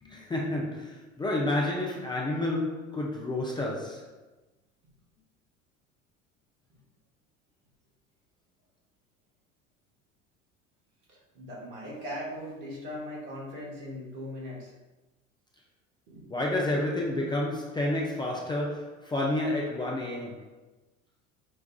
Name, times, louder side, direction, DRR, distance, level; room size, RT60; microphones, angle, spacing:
voice 1, 0.0-4.1 16.3-20.5, left 1 dB, 10° left, -3 dB, 0.4 m, -30 dB
voice 2, 11.1-14.7 16.1-16.4, equal, 65° right, -5 dB, 1.4 m, -39 dB
5.0 x 2.3 x 2.2 m, 1.1 s
hypercardioid pair, 70°, 38 cm